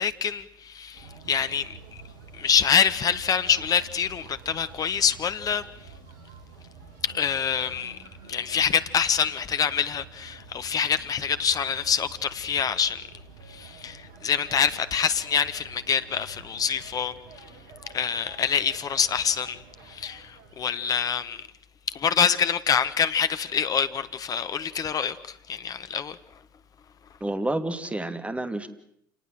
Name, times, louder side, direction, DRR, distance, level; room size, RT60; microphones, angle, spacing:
voice 1, 0.0-1.8 2.3-5.6 7.0-8.0 8.3-13.0 13.5-17.1 17.9-21.5 21.9-26.2, left 7 dB, 35° left, 1.5 m, -26 dB
sound 1, 0.9-20.8, right 4 dB, 65° right, 3.8 m, -48 dB
voice 2, 27.2-28.7, right 1 dB, 10° right, 2.8 m, -29 dB
28.5 x 19.0 x 7.8 m
figure-of-eight pair, 70°, 11 cm